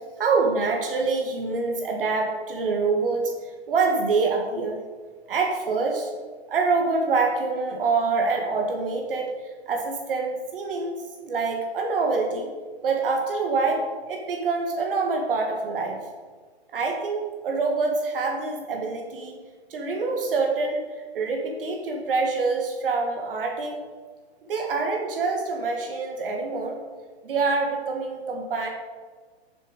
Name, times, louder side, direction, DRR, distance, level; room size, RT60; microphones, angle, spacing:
voice 1, 0.2-4.8 5.3-6.1 6.5-11.0 11.2-12.5 12.8-16.0 16.7-19.4 19.7-23.8 24.5-26.8 27.2-28.7, right 4 dB, 55° right, 2 dB, 1.7 m, -26 dB
11.5 x 7.0 x 5.0 m, 1.5 s
hypercardioid pair, 140°, 32 cm